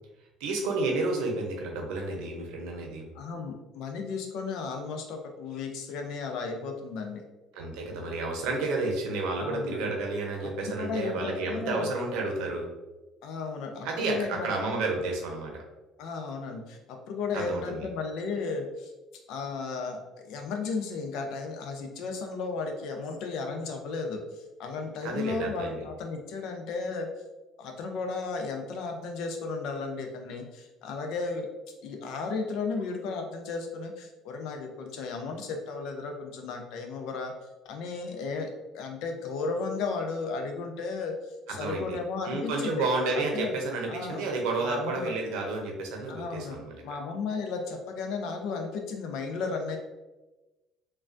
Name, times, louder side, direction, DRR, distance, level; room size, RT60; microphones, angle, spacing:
voice 1, 0.4-3.1 7.5-12.7 13.8-15.6 17.3-17.9 25.0-25.8 41.5-42.0 42.2-47.0, right 3 dB, 85° right, 1 dB, 0.7 m, -31 dB
voice 2, 3.1-7.2 9.4-9.9 10.4-11.9 13.2-14.9 16.0-18.9 19.3-20.0 20.2-27.1 27.6-31.5 31.8-37.3 37.6-38.5 38.7-42.9 43.1-43.5 43.9-44.3 44.6-45.1 46.1-46.6 46.8-49.8, left 4 dB, 75° left, 4 dB, 0.5 m, -34 dB
3.2 x 2.2 x 2.5 m, 1.1 s
cardioid pair, 110°, 0 cm